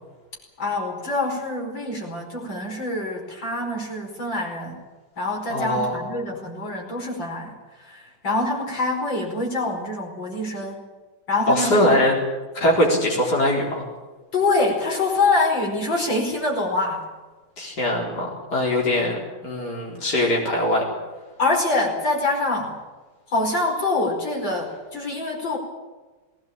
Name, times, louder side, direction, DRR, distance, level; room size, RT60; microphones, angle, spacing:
voice 1, 0.6-4.8 5.2-10.9 11.3-12.0 14.3-17.0 21.4-22.8 23.3-25.6, left 2 dB, 85° left, 1 dB, 5.7 m, -25 dB
voice 2, 5.5-6.0 11.5-12.2 12.5-13.9 17.6-19.2 19.4-20.8, left 1 dB, 60° left, -2 dB, 4.8 m, -21 dB
20.0 x 18.5 x 8.8 m, 1.3 s
omnidirectional pair, 2.0 m